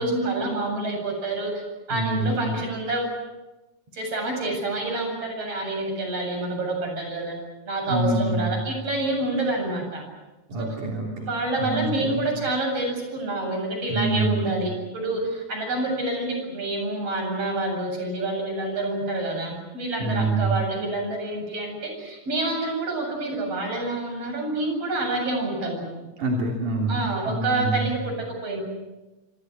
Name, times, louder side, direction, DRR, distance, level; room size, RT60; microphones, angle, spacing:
voice 1, 0.0-1.6 1.9-3.2 3.9-7.4 7.7-10.0 10.6-10.7 11.2-25.9 26.9-28.6, right 2 dB, 50° right, 2 dB, 8.9 m, -28 dB
voice 2, 1.9-2.5 7.9-8.6 10.5-11.3 11.6-12.2 13.9-14.5 20.0-20.6 26.2-27.9, right 2 dB, 85° right, -1 dB, 4.7 m, -26 dB
29.0 x 26.0 x 6.4 m, 1.1 s
omnidirectional pair, 3.4 m